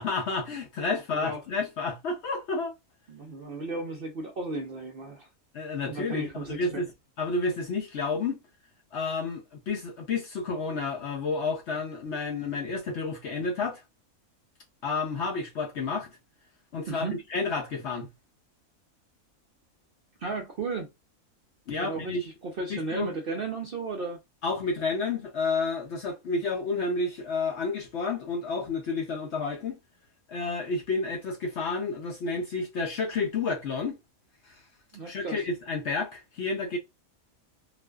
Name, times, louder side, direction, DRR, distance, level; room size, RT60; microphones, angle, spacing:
voice 1, 0.0-2.7 5.5-6.9 7.2-8.4 8.9-13.8 14.8-16.2 16.7-17.1 17.3-18.1 21.7-22.3 22.7-23.1 24.4-29.8 30.3-34.0 34.5-34.6 35.1-36.8, left 4 dB, 65° left, 0.7 m, -30 dB
voice 2, 3.1-5.3 5.8-6.8 16.9-17.2 20.2-20.9 21.8-24.2 34.9-35.4, right 3 dB, 60° right, 0.6 m, -34 dB
2.5 x 2.2 x 2.2 m
omnidirectional pair, 1.5 m